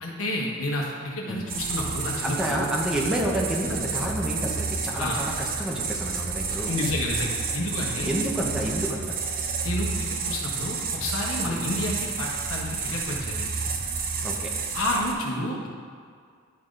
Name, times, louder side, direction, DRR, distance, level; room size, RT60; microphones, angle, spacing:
voice 1, 0.0-2.7 5.0-5.2 6.7-8.1 9.6-13.5 14.7-15.7, left 1 dB, 80° left, -2 dB, 1.2 m, -30 dB
sound 1, 1.5-15.1, right 4 dB, 45° right, 0.7 m, -30 dB
voice 2, 2.2-6.7 8.0-9.1 11.4-11.6 14.2-14.5, right 1 dB, 5° right, -2 dB, 0.8 m, -29 dB
10.5 x 3.9 x 3.8 m, 2.1 s
head